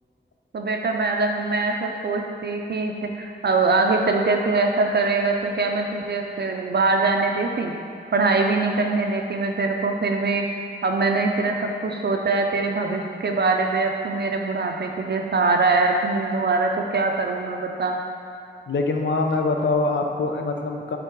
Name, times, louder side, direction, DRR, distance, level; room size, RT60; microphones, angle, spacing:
voice 1, 0.5-7.7 8.1-10.5 10.8-18.0, right 3 dB, 65° right, 2 dB, 0.5 m, -23 dB
voice 2, 18.7-21.0, left 3 dB, 85° left, 3 dB, 0.6 m, -24 dB
6.7 x 3.8 x 4.6 m, 2.8 s
wide cardioid pair, 100°, 19 cm